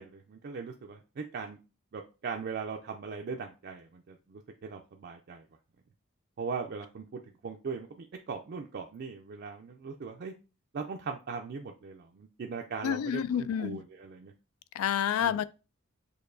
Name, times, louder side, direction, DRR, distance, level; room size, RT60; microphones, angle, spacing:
voice 1, 0.0-1.6 1.9-5.4 6.4-10.3 10.7-14.3 15.2-15.3, right 5 dB, 50° right, 0.4 m, -39 dB
voice 2, 12.8-13.8 14.7-15.4, left 9 dB, 85° left, 0.3 m, -29 dB
6.5 x 2.6 x 2.5 m
head